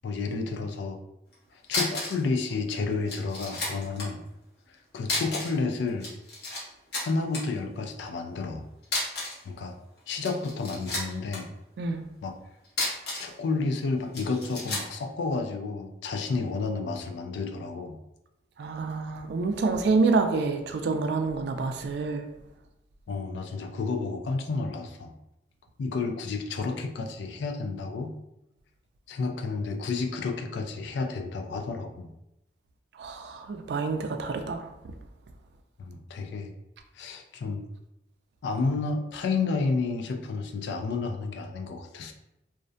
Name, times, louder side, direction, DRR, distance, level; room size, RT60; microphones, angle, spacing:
voice 1, 0.0-1.0 1.7-4.2 4.9-6.1 7.0-8.7 9.5-9.7 10.1-11.5 12.2-12.3 13.2-18.0 23.1-25.2 25.8-28.2 29.1-32.1 35.8-36.5 37.0-37.6 38.4-42.1, left 4 dB, 80° left, 5 dB, 0.3 m, -31 dB
sound 1, 1.3-1.4 1.7-2.2 2.5-2.6 3.1-4.1 5.0-5.6 5.9-6.6 6.9-7.4 8.8-9.4 10.1-11.4 12.6-13.3 14.1-14.9, left 2 dB, 65° left, 0.9 m, -32 dB
voice 2, 18.6-22.2 33.0-34.6, right 4 dB, 70° right, 6 dB, 0.3 m, -27 dB
2.5 x 2.1 x 2.5 m, 0.89 s
head